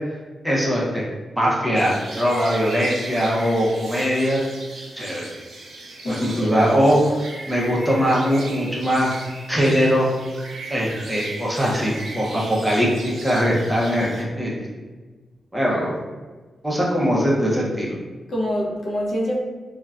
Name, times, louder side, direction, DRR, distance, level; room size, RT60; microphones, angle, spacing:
voice 1, 0.4-1.1 1.4-4.4 5.0-5.3 6.1-9.1 9.5-10.1 10.7-14.7 15.5-16.0 16.6-17.9, equal, ahead, -5 dB, 0.5 m, -21 dB
sound 1, 1.7-14.2, right 2 dB, 75° right, 0.6 m, -38 dB
voice 2, 6.0-6.6 18.3-19.4, equal, 50° left, -3 dB, 0.5 m, -25 dB
3.6 x 2.1 x 2.3 m, 1.3 s
wide cardioid pair, 170°, 0 cm